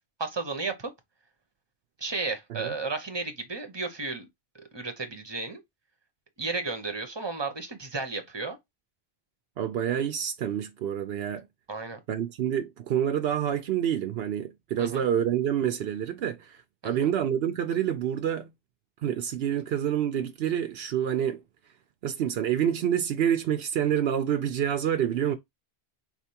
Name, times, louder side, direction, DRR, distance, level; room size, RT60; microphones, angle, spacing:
voice 1, 0.2-0.9 2.0-4.3 4.7-5.6 6.4-8.6 11.7-12.0 14.8-15.0 16.8-17.1, right 3 dB, 25° right, 0.9 m, -33 dB
voice 2, 9.6-11.5 12.1-18.5 19.0-21.4 22.0-25.4, right 9 dB, 75° right, 0.8 m, -27 dB
4.9 x 3.4 x 2.8 m
omnidirectional pair, 1.1 m